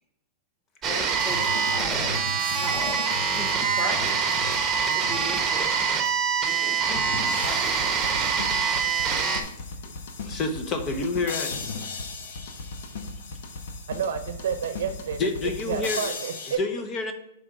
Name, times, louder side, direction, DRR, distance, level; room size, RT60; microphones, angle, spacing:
voice 1, 0.8-2.1 2.5-3.0 3.3-4.3 4.9-5.7 6.4-8.0, right 1 dB, ahead, 0 dB, 1.8 m, -37 dB
sound 1, 0.8-9.4, right 6 dB, 20° right, 1.0 m, -25 dB
sound 2, 1.2-5.6 6.1-6.2 7.0-16.6, left 4 dB, 70° left, 1.0 m, -37 dB
voice 2, 10.2-11.6 15.2-16.1 16.6-17.1, left 3 dB, 30° left, 6 dB, 0.8 m, -28 dB
voice 3, 13.9-16.6, right 7 dB, 75° right, 9 dB, 0.7 m, -30 dB
7.1 x 4.0 x 4.8 m, 0.81 s
hypercardioid pair, 130°, 0 cm